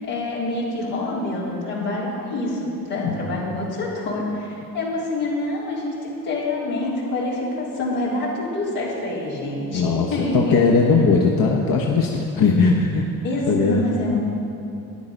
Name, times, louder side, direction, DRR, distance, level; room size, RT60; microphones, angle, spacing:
voice 1, 0.0-10.6 13.2-14.2, left 2 dB, 90° left, -8 dB, 3.5 m, -26 dB
voice 2, 9.7-13.0 13.5-13.8, left 4 dB, 60° left, -1 dB, 1.2 m, -19 dB
12.5 x 9.9 x 5.2 m, 2.7 s
supercardioid pair, 60°, 39 cm